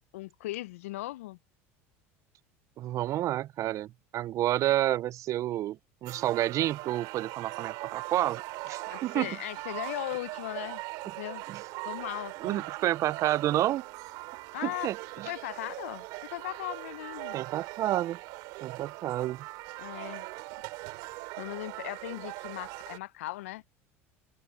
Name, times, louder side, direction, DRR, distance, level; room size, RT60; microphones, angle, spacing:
voice 1, 0.1-1.4 8.8-10.8 11.2-11.4 11.8-12.6 14.5-14.9 15.3-17.5 19.8-20.3 21.4-23.6, left 17 dB, 80° left, 0.6 m, -38 dB
voice 2, 2.8-3.9 4.1-8.4 8.7-9.3 11.5-11.6 12.4-13.8 14.6-15.0 17.3-18.2 18.6-19.5, right 14 dB, 45° right, 0.3 m, -29 dB
sound 1, 6.1-23.0, right 23 dB, 65° right, 2.4 m, -40 dB
hypercardioid pair, 90°, 7 cm